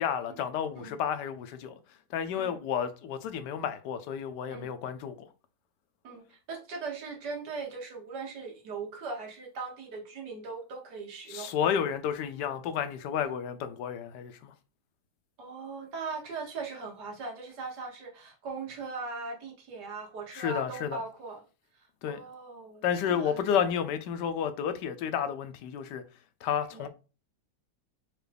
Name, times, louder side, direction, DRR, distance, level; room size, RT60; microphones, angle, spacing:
voice 1, 0.0-1.8 2.1-5.3 11.3-14.5 20.3-21.0 22.0-22.2 22.8-26.0 26.4-26.9, left 8 dB, 85° left, 1.2 m, -31 dB
voice 2, 6.0-11.5 15.4-21.4 22.1-23.5 26.7-26.9, right 4 dB, 80° right, 1.7 m, -39 dB
4.6 x 2.4 x 3.3 m
omnidirectional pair, 1.8 m